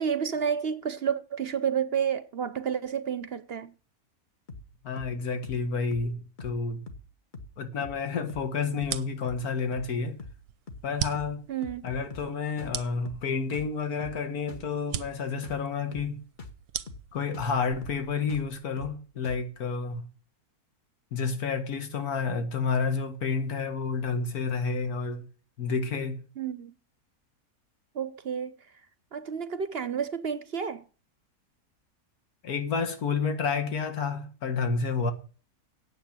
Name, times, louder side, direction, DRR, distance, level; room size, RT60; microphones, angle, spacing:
voice 1, 0.0-3.7 11.5-11.8 26.4-26.7 27.9-28.6 29.1-30.8, right 7 dB, 50° right, 0.8 m, -30 dB
sound 1, 4.5-4.7 5.0-5.2 5.4-5.7 5.9-6.1 6.4-6.6 6.9-7.1 7.3-7.6 7.8-8.0 8.3-8.5 8.8-9.0 9.2-9.5 9.7-9.9 10.2-10.4 10.7-10.9 11.1-11.4 11.6-12.3 12.6-12.8 13.1-13.3 13.5-13.7 14.0-14.2 14.5-14.7 15.0-15.2 15.4-15.7 15.9-16.1 16.4-16.6 16.9-17.1 17.3-17.6 17.8-18.0 18.3-18.5 18.8-19.0 19.2-19.5, left 3 dB, 35° left, 1.4 m, -44 dB
voice 2, 4.8-6.8 7.6-10.2 10.8-11.5 11.8-16.2 17.1-20.1 21.1-25.3 25.6-26.2 32.4-35.1, left 5 dB, 75° left, 2.1 m, -30 dB
sound 2, 8.8-18.7, right 10 dB, 85° right, 1.3 m, -40 dB
9.2 x 7.3 x 8.7 m
omnidirectional pair, 1.6 m